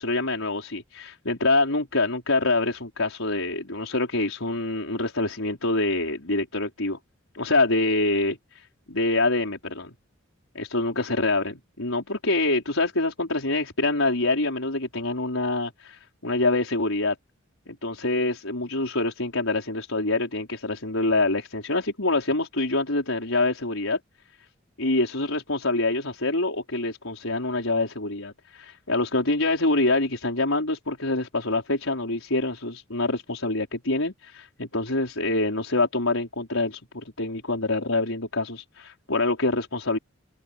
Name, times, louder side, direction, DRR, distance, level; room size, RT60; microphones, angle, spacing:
voice 1, 0.0-7.0 7.3-9.9 10.5-17.1 17.7-24.0 24.8-40.0, left 2 dB, 85° left, 4.9 m, -26 dB
open air
head